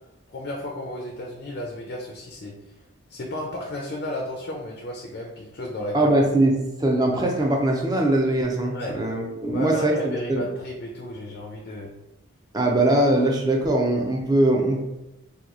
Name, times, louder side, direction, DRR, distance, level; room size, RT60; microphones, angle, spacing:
voice 1, 0.3-2.6 3.1-6.1 8.7-9.0 9.5-11.9, left 1 dB, 50° left, 0 dB, 0.4 m, -33 dB
voice 2, 5.9-10.4 12.5-14.8, right 1 dB, 20° right, 1 dB, 0.4 m, -21 dB
2.9 x 2.3 x 3.6 m, 0.95 s
head